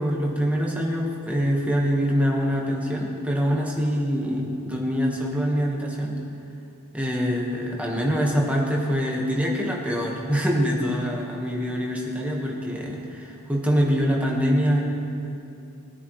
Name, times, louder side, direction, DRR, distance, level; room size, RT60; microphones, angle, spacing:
voice 1, 0.0-6.2 6.9-14.8, equal, 5° right, -2 dB, 1.4 m, -24 dB
20.0 x 9.6 x 3.2 m, 2.7 s
head